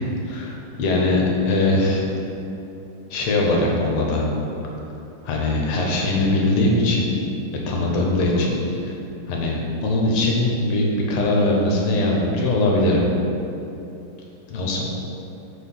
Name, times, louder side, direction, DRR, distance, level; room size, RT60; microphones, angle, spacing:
voice 1, 0.3-2.0 3.1-4.2 5.2-7.1 7.7-8.6 8.8-8.9 9.3-9.5 9.8-13.0 14.5-14.8, left 2 dB, 90° left, -2 dB, 1.9 m, -21 dB
4.5 x 4.4 x 5.3 m, 2.9 s
omnidirectional pair, 2.3 m